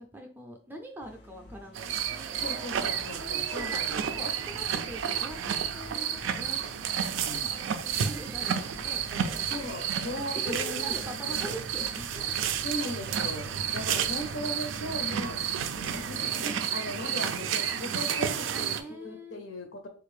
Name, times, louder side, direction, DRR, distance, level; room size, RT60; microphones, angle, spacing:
voice 1, 0.0-2.5 3.2-3.8 4.1-6.6 6.9-9.6 10.4-12.3 13.5-13.6 18.6-19.4, right 1 dB, 10° right, 2 dB, 0.4 m, -44 dB
sound 1, 1.0-16.4, left 1 dB, 55° left, 0.4 m, -50 dB
sound 2, 1.7-18.8, right 8 dB, 75° right, 0.3 m, -31 dB
voice 2, 2.4-4.3 7.1-7.5 9.5-11.5 12.6-13.5 13.7-15.4 15.7-19.9, left 1 dB, 80° left, 5 dB, 0.8 m, -38 dB
3.4 x 2.5 x 3.2 m, 0.42 s
head